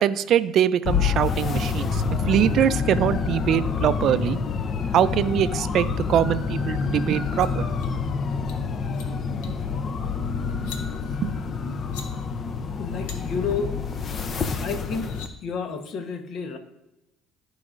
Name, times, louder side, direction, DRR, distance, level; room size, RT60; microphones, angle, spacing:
voice 1, 0.0-4.4 4.9-7.6 10.5-10.6 11.2-11.3, right 10 dB, 55° right, 14 dB, 0.4 m, -23 dB
sound 1, 0.8-15.3, left 5 dB, 40° left, 0.6 m, -27 dB
sound 2, 7.2-7.5 7.8-7.9 8.3-8.6 8.8-9.1 9.4-9.6 10.5-10.8 11.7-12.1 13.1-13.2 14.5-14.6 14.9-15.3, left 6 dB, 85° left, 1.2 m, -42 dB
voice 2, 12.8-13.7 14.2-15.1 15.4-16.6, left 5 dB, 55° left, 7 dB, 1.1 m, -31 dB
13.5 x 4.8 x 2.5 m, 0.96 s
supercardioid pair, 95°, 0 cm